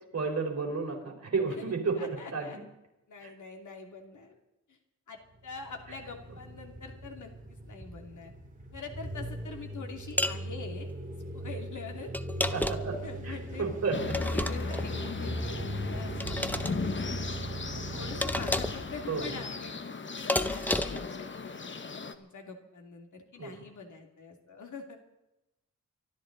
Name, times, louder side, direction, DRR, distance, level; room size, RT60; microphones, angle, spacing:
voice 1, 0.1-2.6 3.2-3.3 12.5-14.2 19.0-19.3 23.4-23.5, right 4 dB, 55° right, 0 dB, 4.3 m, -32 dB
voice 2, 2.0-2.6 3.1-4.4 4.7-4.8 5.1-8.3 8.7-10.9 11.3-12.1 12.5-12.6 13.0-13.6 14.2-17.3 17.9-19.8 20.1-21.7 22.1-25.0, left 4 dB, 75° left, 4 dB, 2.7 m, -45 dB
sound 1, 5.4-19.7, right 1 dB, 25° right, 2.7 m, -39 dB
sound 2, 10.2-10.4 12.1-13.0 14.1-14.9 16.2-16.7 18.2-18.9 20.3-21.1, left 1 dB, 5° left, 0.7 m, -31 dB
sound 3, 13.9-22.2, left 4 dB, 40° left, 1.1 m, -38 dB
24.5 x 12.5 x 4.0 m, 0.92 s
wide cardioid pair, 135°, 30 cm